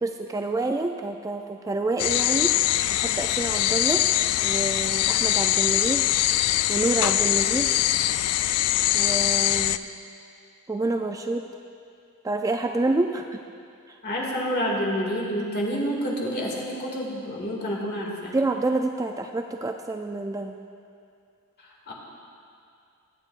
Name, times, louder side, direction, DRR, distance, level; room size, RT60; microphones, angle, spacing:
voice 1, 0.0-2.6 2.9-4.0 4.4-6.0 6.7-7.7 8.9-9.8 10.7-11.5 12.2-13.4 18.3-20.5, right 2 dB, 15° right, 4 dB, 0.3 m, -27 dB
sound 1, 2.0-9.8, left 14 dB, 90° left, 0.3 m, -23 dB
voice 2, 14.0-18.4 21.9-22.0, equal, 50° left, -3 dB, 2.2 m, -28 dB
23.5 x 8.8 x 2.5 m, 2.4 s
head